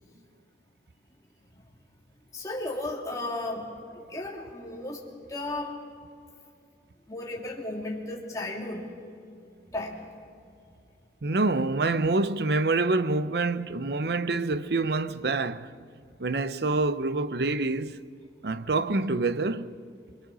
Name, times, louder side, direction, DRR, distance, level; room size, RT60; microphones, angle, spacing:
voice 1, 2.3-5.0 5.3-5.8 7.1-8.9 9.7-10.1, left 2 dB, 20° left, 3.0 m, -34 dB
voice 2, 11.2-15.7 16.2-18.0 18.4-19.7, right 3 dB, 60° right, 0.7 m, -26 dB
25.0 x 23.5 x 6.2 m
head